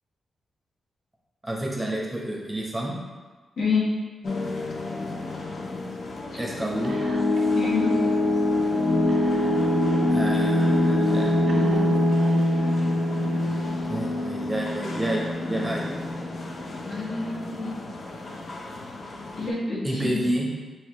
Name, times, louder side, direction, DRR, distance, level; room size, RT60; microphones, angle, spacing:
voice 1, 1.4-2.9 6.4-6.9 10.1-11.6 13.9-16.0 19.8-20.5, right 1 dB, 10° right, -3 dB, 0.8 m, -29 dB
voice 2, 3.6-3.9 6.3-6.4 7.6-8.0 16.8-17.8 19.4-20.2, left 3 dB, 70° left, -8 dB, 1.2 m, -27 dB
sound 1, 4.2-19.5, left 1 dB, 45° left, 0.5 m, -25 dB
Whispering, 6.8-7.6 7.8-7.9 9.1-9.9 10.6-10.7 11.5-12.7, right 2 dB, 70° right, 0.6 m, -37 dB
6.2 x 2.3 x 2.9 m, 1.3 s
wide cardioid pair, 140°, 0 cm